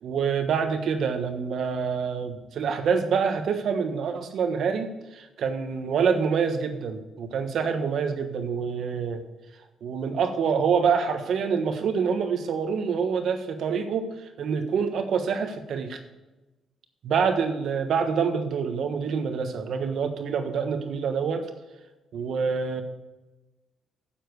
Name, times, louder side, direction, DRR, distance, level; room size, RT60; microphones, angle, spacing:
voice 1, 0.0-9.2 9.8-14.1 14.4-16.0 17.0-21.4 22.1-22.8, right 6 dB, 65° right, 7 dB, 1.2 m, -26 dB
9.3 x 7.4 x 5.2 m, 1.1 s
cardioid pair, 90°, 0 cm